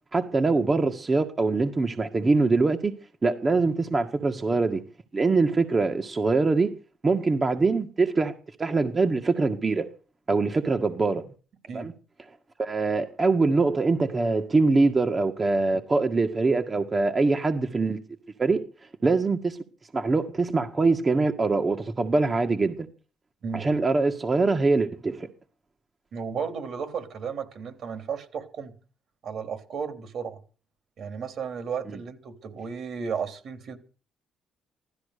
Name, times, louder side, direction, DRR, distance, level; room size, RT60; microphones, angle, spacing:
voice 1, 0.1-2.9 3.2-4.8 5.1-6.7 7.0-8.3 8.6-9.9 10.3-11.2 11.7-11.9 12.6-18.0 18.4-18.6 19.0-19.6 19.9-22.9 23.5-25.3, right 3 dB, 30° right, 1.7 m, -23 dB
voice 2, 26.1-28.7 29.2-30.4 31.0-33.8, right 6 dB, 65° right, 3.4 m, -34 dB
16.0 x 13.0 x 6.8 m
cardioid pair, 75°, 0 cm